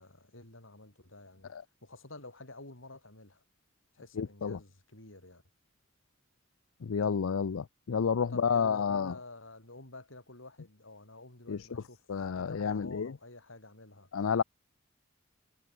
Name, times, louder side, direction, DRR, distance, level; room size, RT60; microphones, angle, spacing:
voice 1, 0.0-1.5 1.8-3.4 3.9-5.4 8.3-12.1 12.4-14.1, left 2 dB, 70° left, 5.4 m, -50 dB
voice 2, 4.2-4.6 6.8-9.1 11.5-11.6 12.1-13.1 14.1-14.4, left 6 dB, 90° left, 0.5 m, -30 dB
head